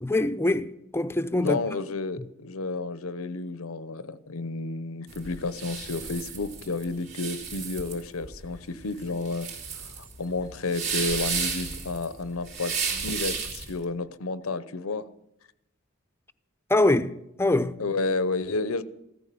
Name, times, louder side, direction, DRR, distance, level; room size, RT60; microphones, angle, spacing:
voice 1, 0.0-1.6 2.2-2.3 16.7-17.8, left 2 dB, 10° left, 0.6 m, -24 dB
voice 2, 1.4-9.5 9.8-15.1 17.8-18.8, left 3 dB, 90° left, 0.8 m, -31 dB
sound 1, 5.1-13.8, right 6 dB, 60° right, 3.6 m, -33 dB
15.0 x 13.5 x 6.9 m
head